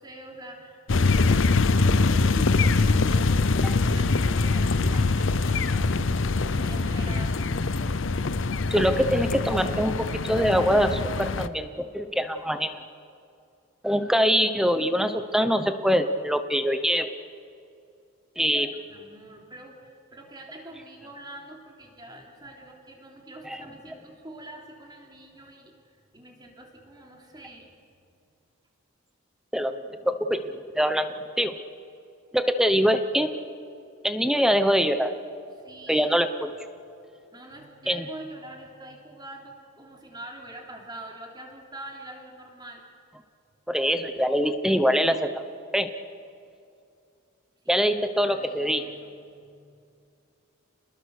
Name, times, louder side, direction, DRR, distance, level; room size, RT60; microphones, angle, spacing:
voice 1, 0.0-7.7 18.6-27.7 35.6-36.2 37.3-42.8 47.6-47.9 48.2-49.7, right 1 dB, 20° right, 1 dB, 3.3 m, -45 dB
sound 1, 0.9-11.5, left 3 dB, 65° left, 0.7 m, -23 dB
voice 2, 8.7-12.8 13.8-17.1 18.4-18.7 23.5-23.6 29.5-29.7 30.0-30.4 30.7-31.1 31.4-31.5 32.3-33.3 34.0-35.1 35.9-36.5 37.9-38.1 43.7-45.3 45.7-45.9 47.7-48.8, equal, ahead, 9 dB, 0.9 m, -23 dB
29.0 x 20.5 x 6.6 m, 2.5 s
head